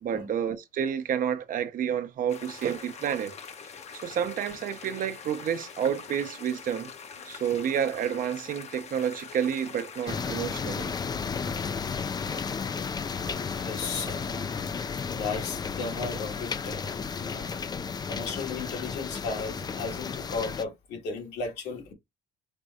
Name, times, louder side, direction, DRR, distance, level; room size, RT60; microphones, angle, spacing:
voice 1, 0.0-3.3 4.0-6.9 7.3-10.9 14.0-14.1, right 8 dB, 55° right, 0.8 m, -30 dB
sound 1, 2.3-10.1, left 6 dB, 40° left, 0.8 m, -44 dB
sound 2, 10.1-20.6, left 5 dB, 25° left, 0.4 m, -33 dB
voice 2, 11.4-11.8 12.7-12.8 13.5-14.5 15.0-17.5 17.9-21.9, left 4 dB, 80° left, 1.9 m, -36 dB
5.2 x 2.2 x 4.2 m
cardioid pair, 110°, 17 cm